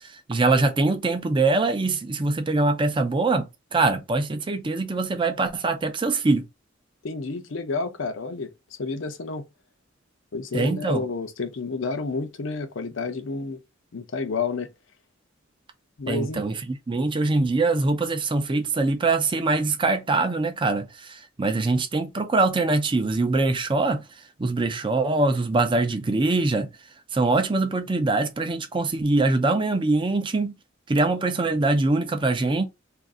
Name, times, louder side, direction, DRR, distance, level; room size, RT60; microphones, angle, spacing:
voice 1, 0.0-3.5 3.7-6.5 10.5-11.0 16.1-24.0 24.4-26.7 27.1-30.5 30.9-32.6, right 3 dB, 25° right, 0.5 m, -23 dB
voice 2, 7.0-8.5 8.8-9.5 10.3-13.6 13.9-14.7 16.0-16.4, left 4 dB, 75° left, 0.6 m, -30 dB
2.5 x 2.5 x 3.6 m
head